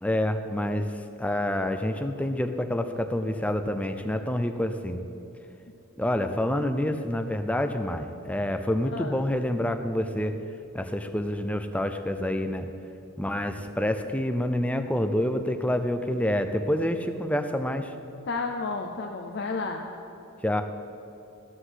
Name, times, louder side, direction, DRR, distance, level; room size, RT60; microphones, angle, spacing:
voice 1, 0.0-5.0 6.0-10.4 10.7-12.7 13.2-17.9 20.4-20.6, left 1 dB, 5° left, 7 dB, 0.5 m, -27 dB
voice 2, 18.3-19.8, left 4 dB, 50° left, 2 dB, 0.6 m, -31 dB
13.5 x 6.0 x 8.0 m, 2.9 s
head